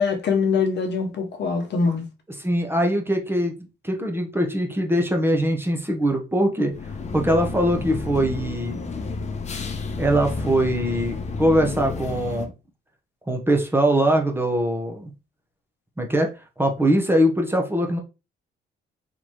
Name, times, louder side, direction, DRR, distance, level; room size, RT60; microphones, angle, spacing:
voice 1, 0.0-2.0, left 5 dB, 60° left, 1.1 m, -23 dB
voice 2, 2.4-6.7 7.1-8.9 10.0-12.5 13.3-15.1 16.0-16.3 16.6-18.0, right 1 dB, 10° right, 1.0 m, -22 dB
sound 1, 6.7-12.5, left 4 dB, 35° left, 1.0 m, -31 dB
4.1 x 3.2 x 3.1 m
cardioid pair, 90°, 20 cm